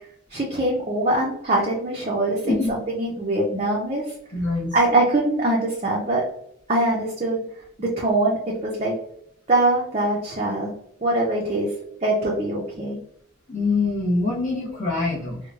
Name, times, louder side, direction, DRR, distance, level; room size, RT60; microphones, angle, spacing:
voice 1, 0.3-4.0 4.7-6.2 6.7-7.4 7.8-8.9 9.5-10.7 11.0-11.7 12.0-13.0, right 2 dB, 30° right, -4 dB, 0.5 m, -23 dB
voice 2, 4.3-4.8 13.5-15.4, left 3 dB, 35° left, -7 dB, 0.8 m, -24 dB
4.6 x 2.1 x 2.4 m, 0.71 s
head